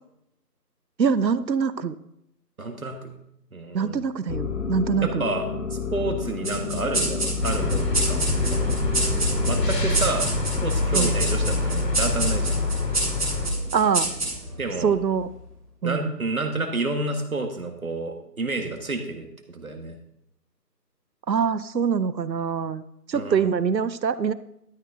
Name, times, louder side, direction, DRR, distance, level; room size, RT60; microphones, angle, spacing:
voice 1, 1.0-1.9 3.7-5.2 10.9-11.2 13.7-14.1 14.8-15.3 15.8-16.2 21.3-22.8 23.1-24.3, right 6 dB, 90° right, 16 dB, 0.8 m, -24 dB
voice 2, 2.6-3.1 3.5-4.1 5.0-8.2 8.5-8.8 9.5-10.3 10.6-12.6 14.6-14.9 15.8-20.0 23.1-23.5, right 2 dB, 55° right, 5 dB, 1.7 m, -30 dB
sound 1, 4.3-9.7, left 4 dB, 50° left, 1.0 m, -29 dB
sound 2, 6.4-15.3, right 2 dB, 20° right, 2.6 m, -29 dB
sound 3, 7.4-13.5, left 2 dB, 80° left, 2.3 m, -25 dB
12.5 x 6.1 x 4.9 m, 0.79 s
figure-of-eight pair, 175°, 49 cm